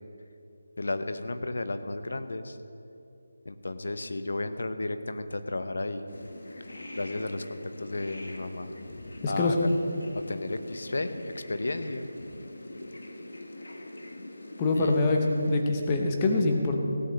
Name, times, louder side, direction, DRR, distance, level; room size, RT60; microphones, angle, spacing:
voice 1, 0.8-2.6 3.4-6.0 6.9-8.7 9.2-9.7 10.1-12.0 14.7-14.9, left 2 dB, 60° left, 10 dB, 0.9 m, -33 dB
sound 1, 6.1-15.6, left 1 dB, 85° left, 1.7 m, -44 dB
voice 2, 9.2-9.6 14.6-15.2 15.5-16.8, left 3 dB, 15° left, 2 dB, 0.8 m, -24 dB
16.5 x 5.5 x 8.8 m, 2.7 s
figure-of-eight pair, 180°, 0 cm